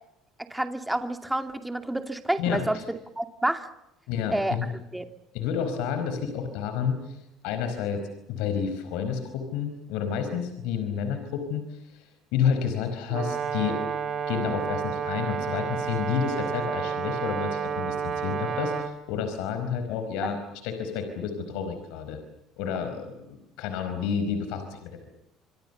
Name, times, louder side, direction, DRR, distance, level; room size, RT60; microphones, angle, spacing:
voice 1, 0.5-2.8 3.2-3.7 4.3-4.6 4.9-5.1 20.2-20.3, right 1 dB, 5° right, 7 dB, 2.5 m, -29 dB
voice 2, 2.4-2.8 4.1-4.7 5.3-8.0 8.3-13.8 14.3-20.4 20.6-22.2 22.6-25.1, left 7 dB, 80° left, 7 dB, 4.8 m, -30 dB
Brass instrument, 13.1-18.9, right 6 dB, 40° right, 3.4 m, -30 dB
27.0 x 25.0 x 6.9 m, 0.83 s
cardioid pair, 125°, 0 cm